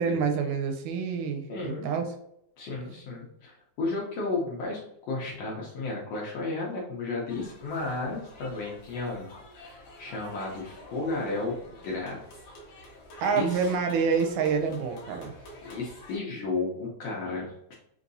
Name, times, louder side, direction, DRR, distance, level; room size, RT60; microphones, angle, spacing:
voice 1, 0.0-2.1 13.2-15.4, right 5 dB, 80° right, 4 dB, 2.0 m, -27 dB
voice 2, 1.5-1.9 2.6-12.4 12.8-12.9 13.3-13.6 15.6-17.7, left 3 dB, 70° left, -3 dB, 1.6 m, -33 dB
sound 1, 7.3-16.2, left 1 dB, 90° left, 1.0 m, -48 dB
5.3 x 2.8 x 2.6 m, 0.74 s
omnidirectional pair, 3.6 m